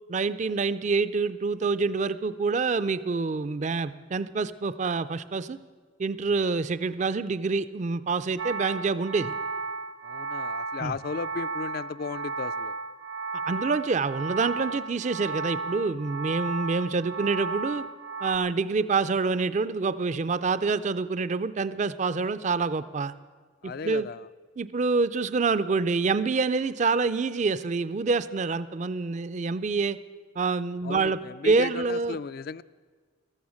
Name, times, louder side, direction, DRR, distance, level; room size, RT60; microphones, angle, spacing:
voice 1, 0.1-5.6 6.0-9.3 10.8-10.9 13.5-17.8 18.2-23.1 23.6-24.1 24.6-30.0 30.4-32.2, right 4 dB, 35° right, 14 dB, 0.4 m, -27 dB
sound 1, 8.4-18.4, right 3 dB, 75° right, 0.6 m, -34 dB
voice 2, 10.0-12.8 23.6-24.3 30.8-32.6, left 5 dB, 50° left, 16 dB, 0.3 m, -35 dB
14.5 x 13.5 x 6.4 m, 1.5 s
head